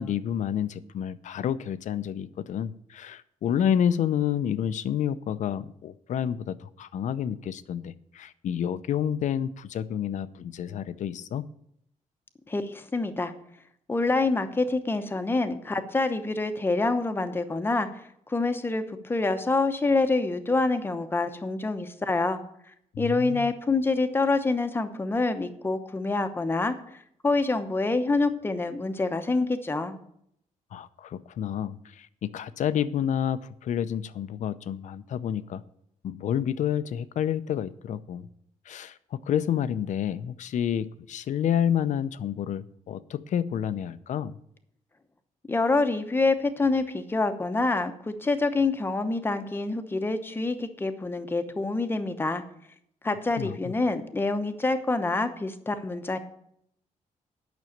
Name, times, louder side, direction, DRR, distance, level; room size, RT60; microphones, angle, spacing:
voice 1, 0.0-11.4 22.9-23.5 30.7-35.6 36.0-38.3 38.7-44.4 53.4-53.7, left 9 dB, 65° left, 14 dB, 0.6 m, -29 dB
voice 2, 12.5-13.3 13.9-18.0 18.3-22.4 23.0-26.7 27.2-30.0 45.5-52.4 53.0-56.2, left 3 dB, 15° left, 8 dB, 0.9 m, -26 dB
9.4 x 6.2 x 8.6 m, 0.71 s
wide cardioid pair, 155°, 13 cm